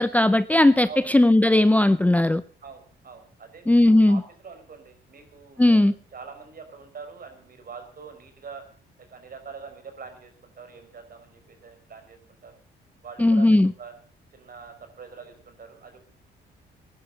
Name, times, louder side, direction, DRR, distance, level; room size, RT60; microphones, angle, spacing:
voice 1, 0.0-2.4 3.7-4.2 5.6-5.9 13.2-13.7, left 1 dB, 5° left, 0.6 m, -17 dB
voice 2, 2.6-8.6 9.0-12.5 13.0-13.9 14.3-16.0, right 5 dB, 45° right, 5.2 m, -44 dB
17.0 x 11.0 x 6.5 m
cardioid pair, 90°, 20 cm